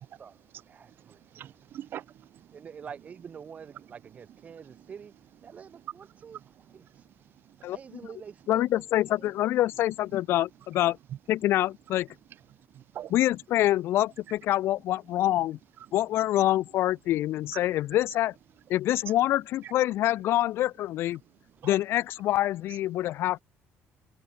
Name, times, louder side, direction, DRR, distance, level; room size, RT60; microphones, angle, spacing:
voice 1, 0.0-0.3 0.7-1.5 2.5-5.1 5.4-6.4 6.7-7.0 7.7-9.3, right 7 dB, 30° right, 4.3 m, -46 dB
voice 2, 0.8-2.6 4.5-4.9 5.5-8.0 11.1-11.2 12.6-13.1 15.8-15.9 17.5-17.6 19.6-19.7 21.6-21.7 22.7-22.8, right 11 dB, 50° right, 3.3 m, -45 dB
voice 3, 8.5-11.0 11.3-12.1 13.1-15.6 15.9-18.3 18.7-21.2 21.6-23.4, left 14 dB, 60° left, 0.7 m, -26 dB
cardioid pair, 160°, 5 cm